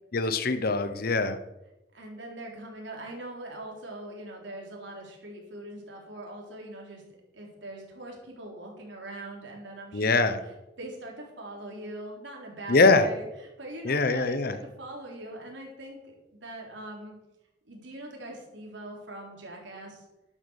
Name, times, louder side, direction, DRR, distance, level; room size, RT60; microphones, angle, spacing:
voice 1, 0.1-1.4 9.9-10.4 12.7-13.1 13.8-14.6, left 3 dB, 55° left, 10 dB, 0.9 m, -23 dB
voice 2, 1.9-7.0 7.3-16.2 16.4-17.1 17.6-20.1, right 1 dB, 75° right, -1 dB, 3.9 m, -42 dB
12.0 x 9.2 x 6.5 m, 0.95 s
head